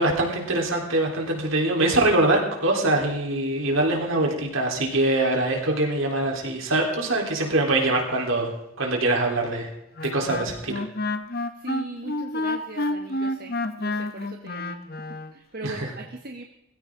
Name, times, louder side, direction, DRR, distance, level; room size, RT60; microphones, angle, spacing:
voice 1, 0.0-8.5 8.8-9.7 10.1-10.8 15.6-15.9, right 2 dB, 65° right, 0 dB, 3.7 m, -23 dB
Wind instrument woodwind instrument, 10.0-15.3, left 2 dB, 45° left, 1.0 m, -29 dB
voice 2, 11.6-14.8 15.1-16.4, right 2 dB, 45° right, 4 dB, 1.1 m, -39 dB
18.5 x 16.0 x 3.8 m, 0.83 s
head